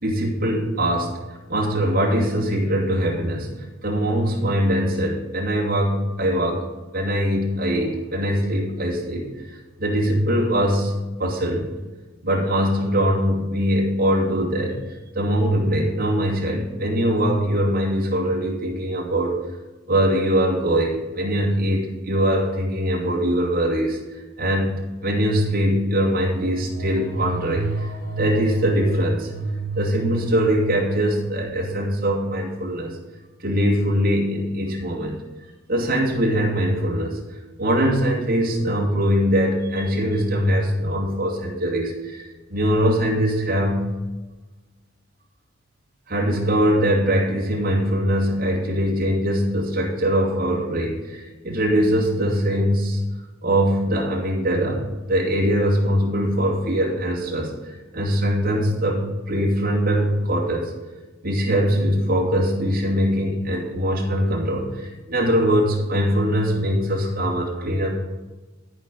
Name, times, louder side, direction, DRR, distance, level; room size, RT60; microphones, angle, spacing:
voice 1, 0.0-1.2 1.5-6.6 6.9-10.9 11.2-11.7 12.2-14.8 15.1-19.4 19.9-33.0 33.4-35.2 35.7-37.2 37.6-42.2 42.5-43.9 46.1-53.0 53.4-60.7 61.2-67.9, equal, 45° right, -4 dB, 2.4 m, -22 dB
13.0 x 5.3 x 5.5 m, 1.2 s
head